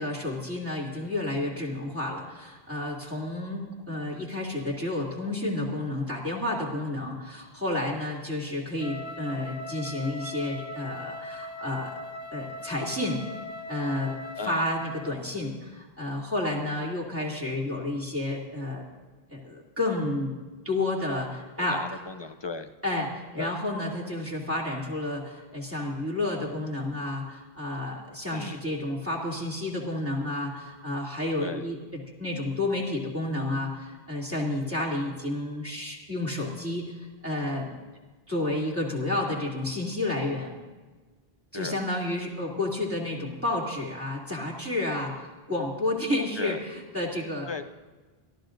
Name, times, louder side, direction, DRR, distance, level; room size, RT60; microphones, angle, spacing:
voice 1, 0.0-11.9 12.3-13.2 13.7-14.1 14.4-18.8 19.3-20.3 20.6-21.8 22.8-36.8 37.2-37.8 38.3-40.6 41.5-47.5, left 1 dB, 15° right, -4 dB, 2.7 m, -31 dB
Wind instrument woodwind instrument, 8.8-15.2, left 1 dB, 70° left, 1.4 m, -40 dB
voice 2, 21.6-22.7 23.3-23.6 28.3-28.6 31.4-31.7 41.5-41.8 46.4-46.6 47.5-47.7, left 4 dB, 35° left, 9 dB, 0.5 m, -36 dB
25.0 x 14.5 x 2.6 m, 1.3 s
omnidirectional pair, 1.1 m